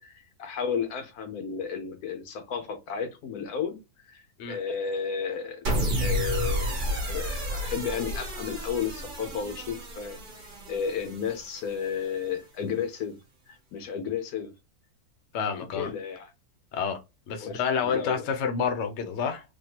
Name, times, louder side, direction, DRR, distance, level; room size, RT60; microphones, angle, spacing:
voice 1, 0.0-3.8 4.0-5.6 6.0-13.2 13.5-14.5 15.6-16.3 17.4-18.3, left 6 dB, 75° left, 1.2 m, -33 dB
sound 1, 5.6-12.0, equal, 40° right, 0.9 m, -31 dB
voice 2, 15.3-15.9 16.7-17.0 17.3-19.4, left 6 dB, 55° left, 0.9 m, -28 dB
3.5 x 2.3 x 2.9 m
omnidirectional pair, 1.6 m